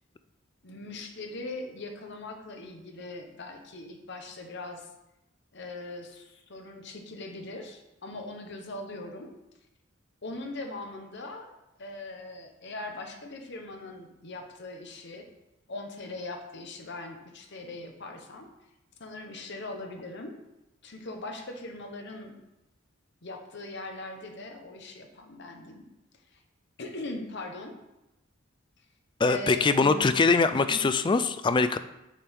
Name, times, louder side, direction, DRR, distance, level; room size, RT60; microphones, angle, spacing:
voice 1, 0.6-4.9 5.5-9.3 10.2-11.5 11.8-15.3 15.7-18.5 19.0-20.3 20.8-22.4 23.2-25.9 26.3-26.4 26.8-27.7 29.2-30.1 30.5-30.8, left 2 dB, 60° left, 3 dB, 1.0 m, -40 dB
voice 2, 29.2-31.8, left 4 dB, 25° left, 11 dB, 0.3 m, -23 dB
8.4 x 4.5 x 3.6 m, 0.94 s
head